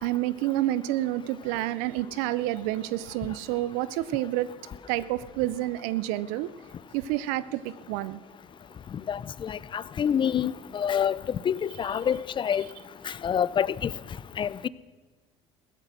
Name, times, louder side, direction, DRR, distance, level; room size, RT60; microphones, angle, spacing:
voice 1, 0.0-4.5 4.9-6.5 6.9-8.2, right 15 dB, 75° right, 17 dB, 0.5 m, -29 dB
voice 2, 9.1-12.6 13.0-13.9 14.4-14.7, left 8 dB, 35° left, 19 dB, 0.6 m, -27 dB
16.0 x 13.0 x 6.2 m, 1.4 s
hypercardioid pair, 70°, 14 cm